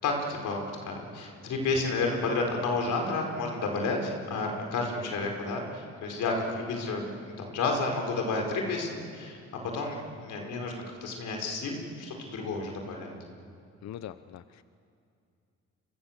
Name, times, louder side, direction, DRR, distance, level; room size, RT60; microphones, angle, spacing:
voice 1, 0.0-10.7 11.0-13.1, left 3 dB, 80° left, 2 dB, 4.9 m, -31 dB
voice 2, 13.8-14.6, left 11 dB, 65° left, 13 dB, 0.8 m, -42 dB
28.5 x 23.5 x 7.5 m, 2.5 s
cardioid pair, 90°, 30 cm